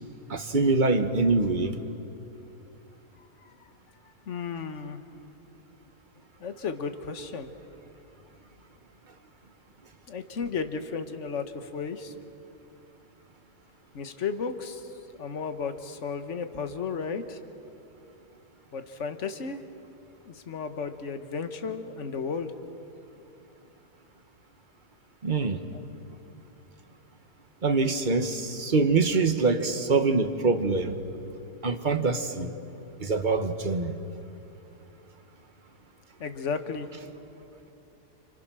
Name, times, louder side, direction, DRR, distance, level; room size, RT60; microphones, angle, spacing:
voice 1, 0.3-1.8 25.2-25.6 27.6-30.9 31.6-32.5 33.0-34.0, right 3 dB, 30° right, 7 dB, 1.4 m, -24 dB
voice 2, 4.3-5.0 6.4-7.5 10.1-12.1 13.9-14.8 15.2-17.4 18.7-19.6 20.3-22.5 36.2-36.9, left 5 dB, 45° left, 8 dB, 1.6 m, -33 dB
30.0 x 28.5 x 6.3 m, 2.7 s
omnidirectional pair, 1.8 m